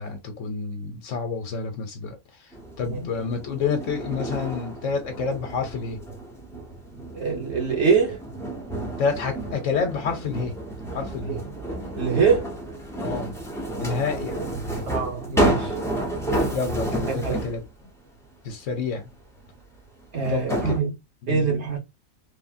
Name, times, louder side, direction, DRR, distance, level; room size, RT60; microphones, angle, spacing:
voice 1, 0.0-2.5 2.8-6.0 9.0-10.5 10.9-11.4 13.0-13.3 13.8-14.9 16.5-17.6 18.4-19.1 20.3-20.7 21.2-21.5, left 5 dB, 65° left, 1.0 m, -29 dB
sound 1, 2.5-17.7 19.4-19.5 20.2-20.8, right 1 dB, 5° left, 0.4 m, -30 dB
voice 2, 7.1-8.2 11.3-11.5 12.0-12.5 14.8-15.7 17.1-17.4 20.1-20.9 21.3-21.8, right 5 dB, 55° right, 1.2 m, -24 dB
3.3 x 2.0 x 2.5 m
omnidirectional pair, 1.5 m